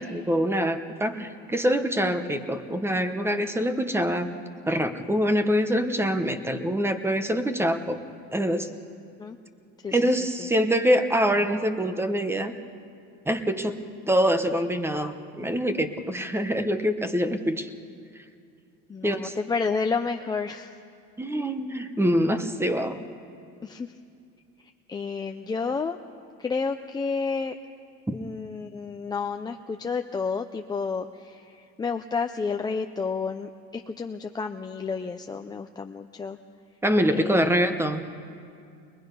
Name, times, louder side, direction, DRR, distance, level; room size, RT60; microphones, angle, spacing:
voice 1, 0.0-4.3 4.7-8.0 8.3-8.7 9.9-12.5 13.3-13.8 14.1-17.7 19.0-19.3 21.2-23.0 28.1-28.2 36.8-38.0, equal, 5° right, 9 dB, 0.9 m, -25 dB
voice 2, 18.9-20.7 23.6-23.9 24.9-26.0 26.4-27.5 28.1-36.4 37.1-37.6, left 5 dB, 15° left, 5 dB, 0.4 m, -30 dB
23.0 x 21.0 x 5.5 m, 2.4 s
cardioid pair, 145°, 33 cm